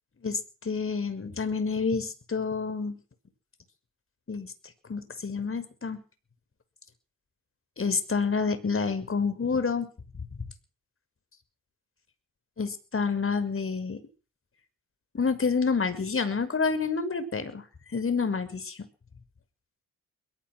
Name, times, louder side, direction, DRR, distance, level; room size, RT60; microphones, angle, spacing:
voice 1, 0.2-3.0 4.3-4.5 4.9-6.0 7.8-9.9 12.6-14.0 15.1-17.6 17.9-18.9, left 5 dB, 35° left, 11 dB, 6.2 m, -28 dB
22.5 x 18.5 x 6.3 m, 0.39 s
cardioid pair, 70°, 35 cm